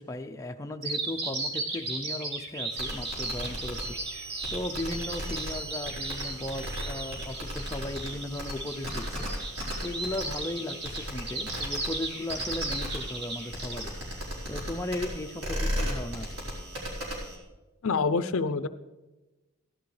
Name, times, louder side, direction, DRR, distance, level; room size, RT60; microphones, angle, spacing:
voice 1, 0.0-4.0 4.5-9.2 9.8-13.9 14.5-16.3, left 1 dB, 15° left, 4 dB, 0.5 m, -36 dB
Bird vocalization bird call bird song, 0.8-13.8, right 3 dB, 50° right, 2.1 m, -35 dB
sound 1, 2.7-17.4, equal, 75° right, 4.5 m, -36 dB
voice 2, 17.8-18.7, left 4 dB, 70° left, 12 dB, 0.5 m, -26 dB
16.5 x 11.5 x 3.3 m, 1.1 s
head